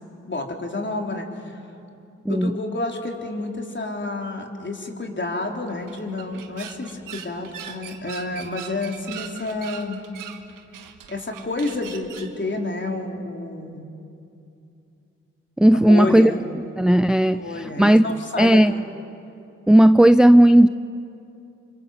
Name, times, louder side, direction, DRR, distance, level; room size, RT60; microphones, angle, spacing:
voice 1, 0.3-1.6 2.3-10.0 11.1-13.9 15.7-16.4 17.4-18.8, left 2 dB, 35° left, 1 dB, 4.0 m, -29 dB
voice 2, 2.3-2.6 15.6-16.3 16.8-18.0 18.4-18.7 19.7-20.7, right 1 dB, ahead, 12 dB, 0.5 m, -14 dB
sound 1, 5.7-12.4, right 9 dB, 85° right, 1.4 m, -40 dB
25.5 x 24.0 x 7.4 m, 2.6 s
supercardioid pair, 45°, 32 cm